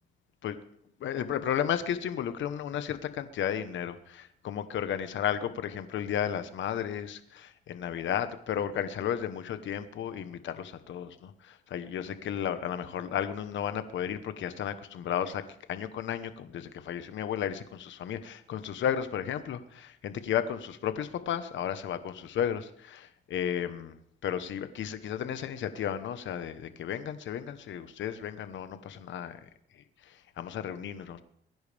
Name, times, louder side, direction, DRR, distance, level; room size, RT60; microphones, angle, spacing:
voice 1, 1.0-29.5 29.8-31.2, left 9 dB, 70° left, 11 dB, 1.2 m, -33 dB
22.5 x 10.5 x 3.5 m, 0.69 s
cardioid pair, 90°, 20 cm